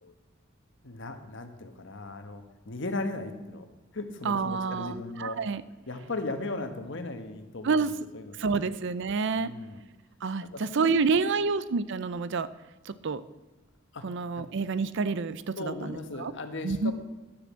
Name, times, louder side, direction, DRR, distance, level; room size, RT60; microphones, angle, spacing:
voice 1, 0.8-3.7 3.9-5.4 5.9-8.7 9.4-9.8 10.4-11.5 13.9-14.5 15.6-16.9, left 2 dB, 65° left, 7 dB, 1.2 m, -37 dB
voice 2, 4.2-5.6 7.6-7.9 8.4-9.5 10.2-12.5 13.0-13.2 14.0-16.3 16.6-16.9, right 4 dB, 60° right, 15 dB, 0.5 m, -28 dB
9.8 x 6.9 x 7.4 m, 1.1 s
head